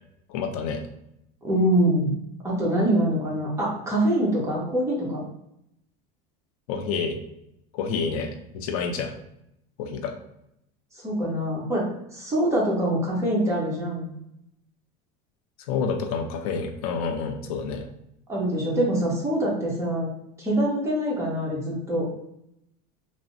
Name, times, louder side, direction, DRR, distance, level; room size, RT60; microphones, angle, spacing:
voice 1, 0.3-0.8 6.7-7.2 7.7-9.1 9.8-10.1 15.7-17.9, left 5 dB, 85° left, 5 dB, 0.5 m, -28 dB
voice 2, 1.4-2.1 2.4-5.2 11.0-14.1 18.3-20.1 20.4-22.1, right 1 dB, 15° right, -4 dB, 1.0 m, -24 dB
3.3 x 2.0 x 2.6 m, 0.79 s
supercardioid pair, 140°, 18 cm